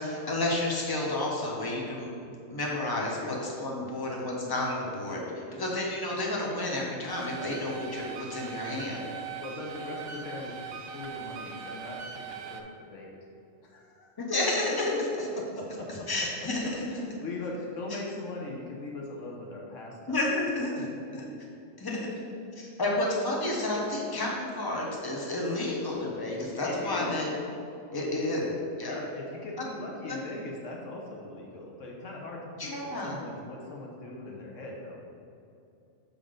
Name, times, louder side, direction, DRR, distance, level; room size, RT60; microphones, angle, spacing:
voice 1, 0.0-2.1 2.5-9.0 14.3-14.9 16.1-16.9 17.9-18.0 20.1-20.7 21.1-21.2 21.8-22.1 22.6-27.3 27.9-29.0 29.6-29.7 30.1-30.2 32.6-33.2, left 2 dB, 20° left, -3 dB, 0.9 m, -31 dB
sound 1, 7.1-12.6, right 6 dB, 60° right, 0.7 m, -41 dB
voice 2, 7.4-7.7 9.3-12.0 12.3-13.2 13.6-14.2 15.3-16.1 16.4-20.2 20.8-20.9 26.6-27.1 28.0-28.4 28.8-35.0, left 2 dB, 80° left, -1 dB, 1.2 m, -40 dB
6.7 x 3.8 x 5.0 m, 2.6 s
omnidirectional pair, 1.3 m